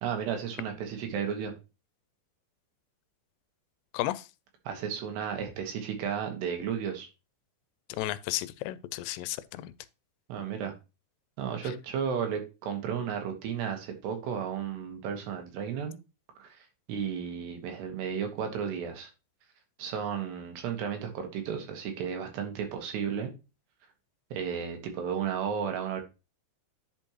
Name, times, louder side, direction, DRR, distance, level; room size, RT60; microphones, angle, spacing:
voice 1, 0.0-1.5 4.7-7.1 10.3-10.7 11.4-16.0 16.4-19.1 19.8-23.3 24.3-26.0, right 7 dB, 80° right, 3.5 m, -33 dB
voice 2, 3.9-4.3 7.9-9.7, left 16 dB, 90° left, 2.7 m, -33 dB
10.5 x 5.3 x 3.0 m
omnidirectional pair, 4.8 m